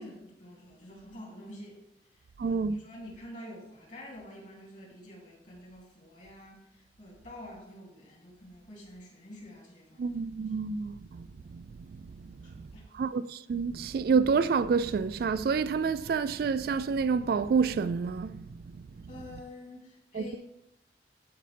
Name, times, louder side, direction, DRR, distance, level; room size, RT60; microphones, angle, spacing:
voice 1, 0.0-1.8 2.1-10.2 12.4-12.9 19.1-20.4, left 1 dB, 45° left, 2.8 m, -48 dB
voice 2, 2.4-2.8 10.0-11.3 11.5-11.7 12.9-18.5 19.3-19.4 20.1-20.4, right 5 dB, 55° right, 0.3 m, -28 dB
12.5 x 5.2 x 3.4 m
head